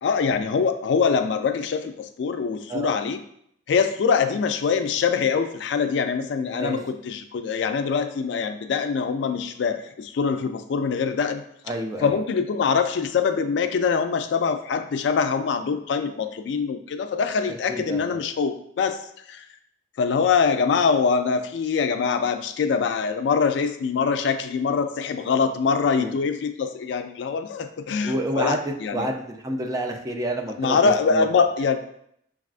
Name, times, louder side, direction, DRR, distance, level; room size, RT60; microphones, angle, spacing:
voice 1, 0.0-3.2 3.7-11.4 12.0-19.0 19.3-19.4 20.0-29.1 30.6-31.8, left 5 dB, 80° left, 8 dB, 0.3 m, -24 dB
voice 2, 6.4-6.8 11.7-12.1 17.7-18.2 26.0-26.1 28.0-28.6 28.9-31.3, right 1 dB, 20° right, 2 dB, 0.4 m, -29 dB
6.2 x 2.4 x 2.4 m, 0.70 s
head